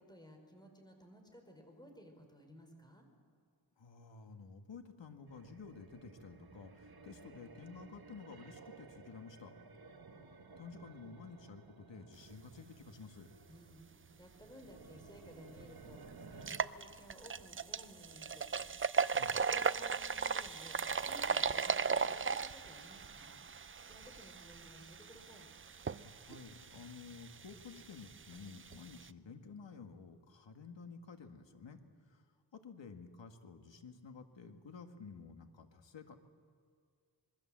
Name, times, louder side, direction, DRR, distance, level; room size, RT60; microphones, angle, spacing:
voice 1, 0.0-3.1 13.5-16.0 16.3-18.5 19.5-20.8 21.1-25.5, equal, 10° left, 3 dB, 4.3 m, -57 dB
voice 2, 3.8-9.5 10.6-13.3 19.1-19.5 26.0-31.8 32.1-32.2 32.5-36.2, left 5 dB, 90° left, 6 dB, 2.0 m, -52 dB
sound 1, 5.3-16.6, right 4 dB, 55° right, 1.5 m, -56 dB
sound 2, 15.1-15.2 15.6-15.7 16.3-29.1, right 5 dB, 30° right, 0.5 m, -37 dB
26.0 x 22.0 x 7.6 m, 2.2 s
wide cardioid pair, 100°, 43 cm